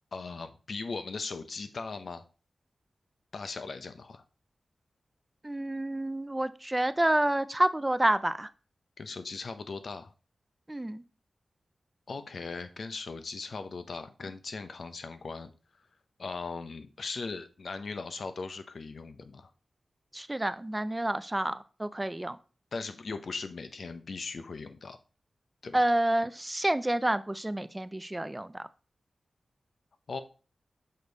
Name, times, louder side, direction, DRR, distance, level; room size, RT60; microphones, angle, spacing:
voice 1, 0.1-2.2 3.3-4.2 9.0-10.1 12.1-15.5 16.2-19.5 22.7-25.0 25.6-25.8 30.1-30.2, left 4 dB, 60° left, 10 dB, 0.7 m, -39 dB
voice 2, 5.4-8.5 10.7-11.0 20.1-22.4 25.7-28.7, right 1 dB, 15° right, 13 dB, 0.4 m, -29 dB
6.6 x 5.3 x 3.9 m, 0.36 s
wide cardioid pair, 135°, 0 cm